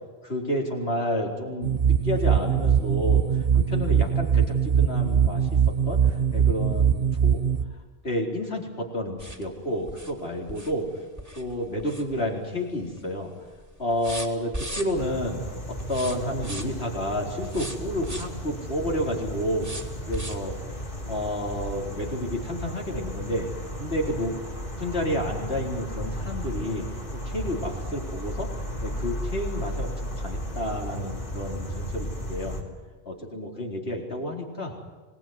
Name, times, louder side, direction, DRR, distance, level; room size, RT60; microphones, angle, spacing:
voice 1, 0.2-3.2 3.5-7.4 8.0-10.9 11.4-13.3 13.8-15.4 15.7-19.7 20.1-20.5 21.1-23.5 23.8-26.9 27.1-32.6 33.1-34.8, left 1 dB, 75° left, 0 dB, 4.6 m, -30 dB
sound 1, 1.6-7.6, right 8 dB, 60° right, 1.4 m, -22 dB
sound 2, 9.2-12.6 12.9-13.3 13.5-15.2 15.8-16.9 17.4-18.4 19.6-20.5 21.1-21.2 21.6-21.7, equal, 15° right, 2.7 m, -38 dB
sound 3, 14.9-32.6, equal, 55° left, 4.3 m, -35 dB
25.5 x 20.0 x 9.7 m, 1.3 s
omnidirectional pair, 1.1 m